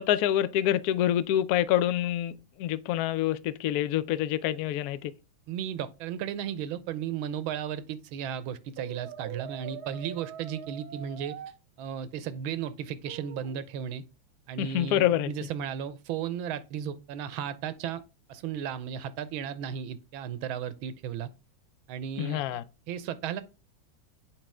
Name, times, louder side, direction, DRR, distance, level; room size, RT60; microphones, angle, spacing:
voice 1, 0.0-5.1 14.6-15.3 22.2-22.6, left 12 dB, 85° left, 0.8 m, -26 dB
voice 2, 5.5-11.4 11.8-14.0 14.5-18.0 18.3-21.3 21.9-22.6 22.9-23.4, right 9 dB, 90° right, 1.5 m, -35 dB
Brass instrument, 8.8-11.5 13.1-13.6, right 8 dB, 70° right, 1.0 m, -43 dB
7.4 x 4.8 x 3.4 m
omnidirectional pair, 2.2 m